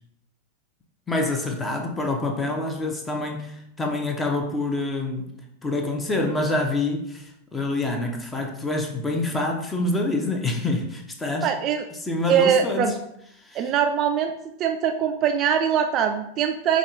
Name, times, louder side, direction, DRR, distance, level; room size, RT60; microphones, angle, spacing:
voice 1, 1.1-5.4 5.6-11.5 12.0-13.0 13.4-13.7, left 2 dB, 15° left, 2 dB, 0.7 m, -26 dB
voice 2, 11.4-11.9 12.3-12.9 13.5-14.3 14.6-16.8, right 8 dB, 35° right, 5 dB, 0.3 m, -22 dB
4.9 x 2.3 x 3.8 m, 0.76 s
figure-of-eight pair, 90°, 0 cm